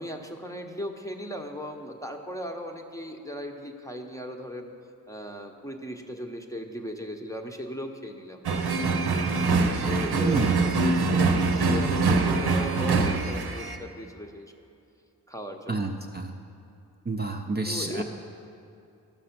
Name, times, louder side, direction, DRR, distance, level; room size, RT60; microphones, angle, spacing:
voice 1, 0.0-4.7 5.1-8.7 9.3-14.5 15.3-15.9 17.7-18.0, equal, 10° left, 3 dB, 0.7 m, -37 dB
sound 1, 8.4-13.8, right 3 dB, 70° right, 0.8 m, -24 dB
voice 2, 10.2-10.7 15.7-16.3 17.1-18.0, right 2 dB, 25° right, 2 dB, 0.5 m, -29 dB
12.5 x 6.0 x 5.8 m, 2.6 s
wide cardioid pair, 95°, 39 cm